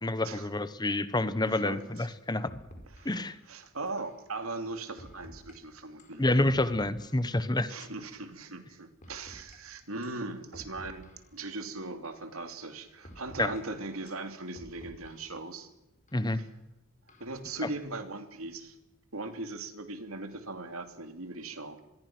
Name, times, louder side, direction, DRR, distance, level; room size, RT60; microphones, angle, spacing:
voice 1, 0.0-2.5 3.0-3.4 6.2-7.7 13.4-13.5 16.1-16.4, left 1 dB, 20° left, 13 dB, 1.1 m, -28 dB
sound 1, 1.5-1.6 2.0-2.1 2.5-3.2 4.0-4.2 5.0-5.5 6.0-7.4 8.0-8.2 9.0-9.6 10.0-10.2 10.5-11.4 12.0-12.3 13.0-13.6 14.1-15.4 16.1-16.2 17.1-17.5, equal, 35° left, 4.9 m, -51 dB
voice 2, 1.5-2.1 3.0-3.2 3.5-6.2 7.7-15.7 16.4-16.5 17.2-18.8 19.1-21.8, right 2 dB, 75° right, 7 dB, 2.8 m, -39 dB
26.5 x 21.5 x 6.1 m, 0.98 s
head